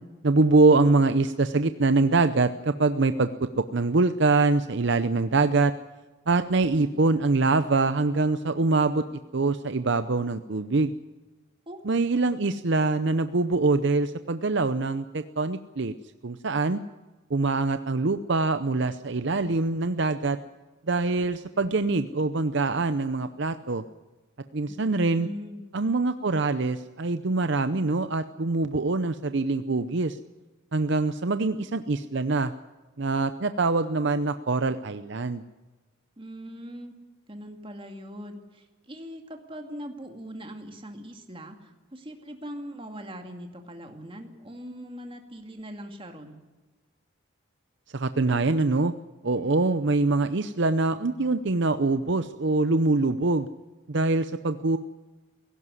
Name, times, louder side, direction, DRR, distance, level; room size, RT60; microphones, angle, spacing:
voice 1, 0.2-3.3 3.6-5.7 6.3-9.0 9.3-10.9 11.9-15.9 16.2-16.8 17.3-20.4 20.9-23.8 24.5-25.3 25.7-30.2 30.7-32.5 33.0-35.4 47.9-48.9 49.2-53.5 53.9-54.8, right 3 dB, 55° right, 11 dB, 0.7 m, -24 dB
voice 2, 24.7-25.7 36.2-36.9 37.3-46.4, equal, 25° right, 4 dB, 2.2 m, -41 dB
17.0 x 17.0 x 9.8 m, 1.2 s
head